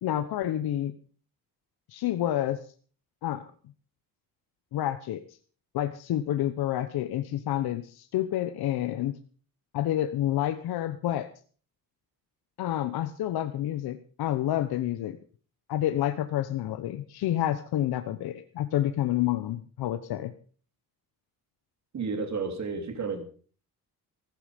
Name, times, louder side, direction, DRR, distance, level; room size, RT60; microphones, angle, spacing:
voice 1, 0.0-0.9 1.9-2.6 3.2-3.4 4.7-5.2 5.7-9.2 9.7-11.3 12.6-15.2 15.7-20.3, left 12 dB, 90° left, 9 dB, 1.0 m, -29 dB
voice 2, 21.9-23.2, right 4 dB, 50° right, 6 dB, 3.2 m, -31 dB
15.0 x 14.0 x 5.2 m, 0.42 s
cardioid pair, 130°, 36 cm